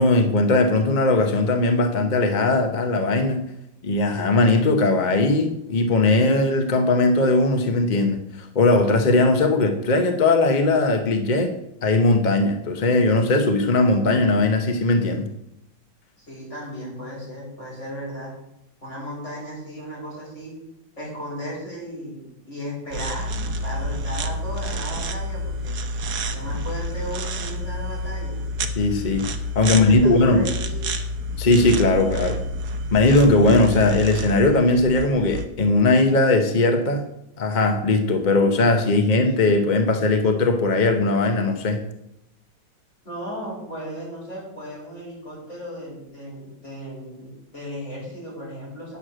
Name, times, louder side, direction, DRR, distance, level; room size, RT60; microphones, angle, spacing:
voice 1, 0.0-3.4 3.8-11.5 11.8-15.3 28.8-29.2 29.5-30.4 31.4-32.4 32.9-37.0 37.4-41.8, left 2 dB, 50° left, 6 dB, 0.5 m, -19 dB
voice 2, 16.2-18.3 18.8-20.5 21.0-25.7 26.3-28.4 29.7-30.9 38.9-39.2 43.0-49.0, equal, 30° left, -5 dB, 5.8 m, -35 dB
sound 1, 22.9-35.5, equal, 60° right, 1.3 m, -29 dB
9.6 x 6.4 x 7.5 m, 0.84 s
omnidirectional pair, 2.3 m